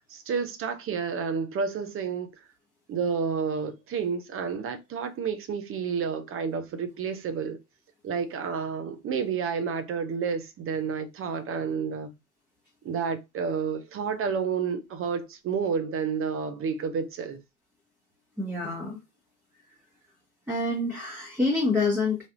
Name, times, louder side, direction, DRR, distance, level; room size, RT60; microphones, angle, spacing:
voice 1, 0.1-2.3 2.9-7.6 8.0-12.1 12.8-17.4, right 6 dB, 30° right, 0.6 m, -30 dB
voice 2, 18.4-19.0 20.5-22.2, left 3 dB, 5° right, 1.0 m, -27 dB
3.3 x 2.5 x 2.5 m
hypercardioid pair, 80°, 43 cm